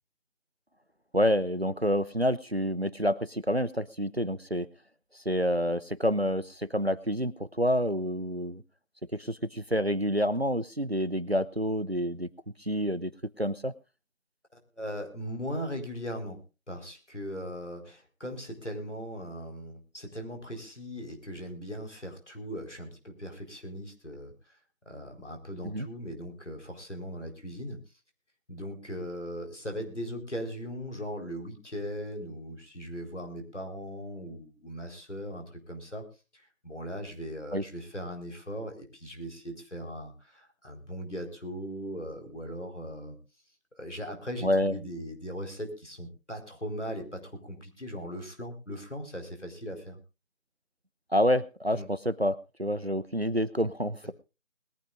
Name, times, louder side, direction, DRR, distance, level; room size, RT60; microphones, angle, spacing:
voice 1, 1.1-4.7 5.3-8.6 9.1-12.3 12.6-13.1 13.4-13.7 25.6-25.9 37.5-37.6 44.4-44.7 51.1-54.1, equal, 50° right, 17 dB, 0.7 m, -28 dB
voice 2, 14.5-16.4 16.7-24.6 24.9-27.8 28.5-36.0 36.3-43.2 43.7-50.0 51.7-51.9, equal, 60° left, 4 dB, 4.4 m, -39 dB
21.5 x 14.0 x 2.5 m, 0.29 s
figure-of-eight pair, 175°, 40 cm